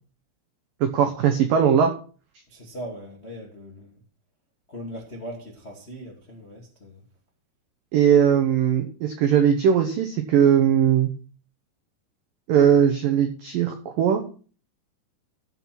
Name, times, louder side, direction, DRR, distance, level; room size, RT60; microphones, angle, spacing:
voice 1, 0.8-1.9 7.9-11.1 12.5-14.2, right 8 dB, 90° right, 5 dB, 1.9 m, -19 dB
voice 2, 2.5-4.0 4.7-7.0, equal, 45° left, -1 dB, 0.8 m, -39 dB
14.5 x 5.6 x 5.9 m, 0.39 s
omnidirectional pair, 5.4 m